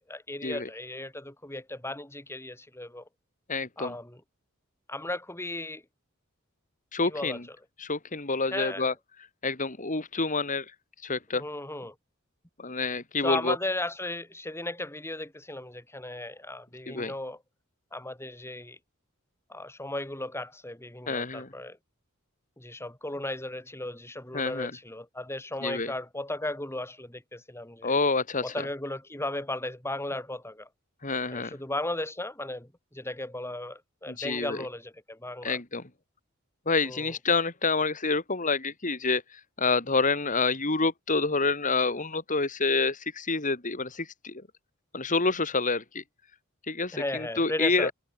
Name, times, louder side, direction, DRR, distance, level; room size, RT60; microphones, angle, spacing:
voice 1, 0.1-3.1 3.8-4.2 4.9-5.8 7.0-7.6 8.5-8.9 11.3-11.9 13.2-17.4 17.9-18.8 19.5-21.8 22.6-27.9 28.4-30.7 31.3-35.6 36.8-37.2 46.9-47.9, left 1 dB, 10° left, 5.1 m, -36 dB
voice 2, 3.5-3.9 6.9-7.4 7.8-8.9 9.4-10.7 11.0-11.4 12.6-13.6 16.9-17.1 21.1-21.5 24.3-24.7 25.6-25.9 27.8-28.7 31.0-31.6 34.1-34.6 35.4-35.8 36.7-44.4 44.9-46.0 46.7-47.9, left 3 dB, 40° left, 3.0 m, -28 dB
head